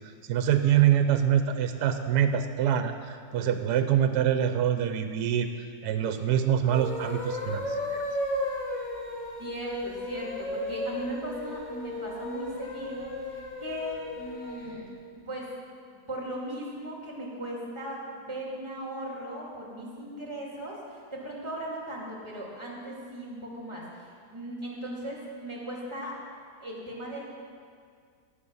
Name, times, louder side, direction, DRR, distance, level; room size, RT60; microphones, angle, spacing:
voice 1, 0.3-5.5 5.8-8.0, right 9 dB, 75° right, 8 dB, 1.2 m, -25 dB
sound 1, 6.6-14.8, left 1 dB, 30° left, 1.7 m, -34 dB
voice 2, 9.4-14.9 15.1-15.5 16.1-26.2 26.6-27.2, right 1 dB, 15° right, -4 dB, 2.7 m, -38 dB
18.0 x 7.0 x 5.5 m, 2.1 s
omnidirectional pair, 1.8 m